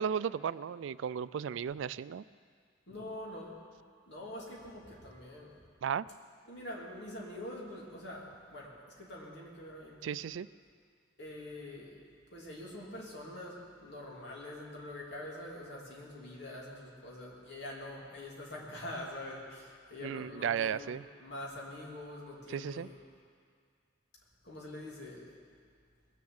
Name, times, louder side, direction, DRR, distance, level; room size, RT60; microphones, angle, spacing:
voice 1, 0.0-2.2 5.8-6.1 10.0-10.5 20.0-21.0 22.5-22.9, right 7 dB, 75° right, 17 dB, 0.3 m, -34 dB
voice 2, 2.9-3.6 4.1-5.7 6.5-10.2 11.2-12.0 12.3-20.9 21.2-23.0 24.4-25.3, left 1 dB, 60° left, -3 dB, 3.0 m, -45 dB
20.0 x 7.2 x 7.9 m, 2.1 s
head